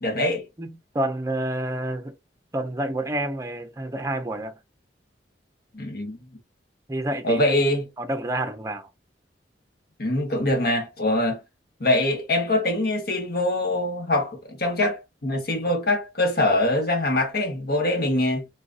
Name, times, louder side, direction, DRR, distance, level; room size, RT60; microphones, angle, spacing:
voice 1, 0.0-0.4 5.7-6.2 7.2-7.9 10.0-11.4 11.8-18.4, left 1 dB, 60° left, 1.4 m, -23 dB
voice 2, 0.6-2.1 2.5-4.5 6.9-7.4 8.0-8.9, right 1 dB, 20° right, 0.7 m, -28 dB
4.0 x 2.5 x 2.5 m
head